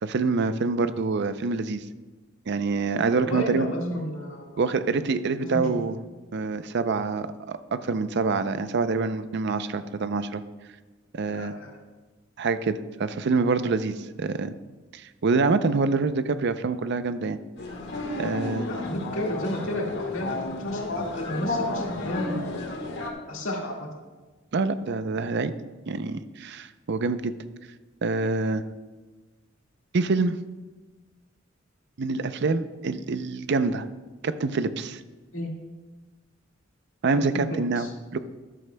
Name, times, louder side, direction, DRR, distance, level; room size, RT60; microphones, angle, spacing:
voice 1, 0.0-1.8 2.5-3.7 4.6-6.0 6.3-10.4 11.1-11.5 12.4-14.5 14.9-17.4 18.2-18.7 24.5-25.5 25.9-27.3 28.0-28.6 29.9-30.4 32.0-33.8 34.2-35.0 37.0-38.2, right 4 dB, 60° right, 12 dB, 0.5 m, -26 dB
voice 2, 3.2-4.6 5.4-5.8 11.3-11.8 18.7-22.7 23.3-23.9 35.3-35.5 37.5-37.9, left 1 dB, 80° left, -1 dB, 1.9 m, -32 dB
sound 1, 17.6-23.1, left 2 dB, 60° left, 1.4 m, -32 dB
13.0 x 11.0 x 2.2 m, 1.3 s
head